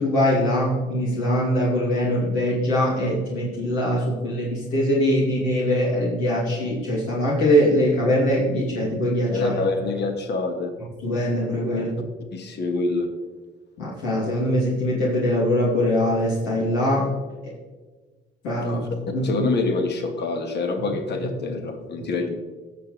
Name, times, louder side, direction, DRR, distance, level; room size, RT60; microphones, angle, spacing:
voice 1, 0.0-9.6 11.0-11.9 13.8-17.1 17.4-17.5 18.4-18.8 19.1-19.5, equal, 85° left, -6 dB, 2.7 m, -22 dB
voice 2, 9.3-10.7 11.7-11.8 12.3-13.1 18.6-18.9 19.2-22.4, left 3 dB, 55° left, 5 dB, 1.6 m, -26 dB
16.0 x 6.4 x 3.2 m, 1.3 s
supercardioid pair, 75°, 21 cm